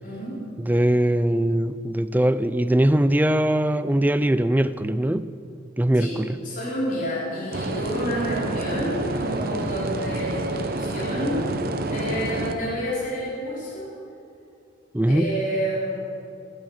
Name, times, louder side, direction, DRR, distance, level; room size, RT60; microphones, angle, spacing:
voice 1, 0.0-0.4 5.9-6.2 6.4-11.6 11.9-13.9 15.1-16.0, equal, 45° left, -6 dB, 4.1 m, -29 dB
voice 2, 0.6-5.3 5.8-6.3 14.9-15.3, right 1 dB, 10° right, 13 dB, 0.4 m, -21 dB
sound 1, 7.5-12.5, right 2 dB, 50° right, 0.9 m, -28 dB
16.5 x 9.6 x 8.6 m, 2.6 s
head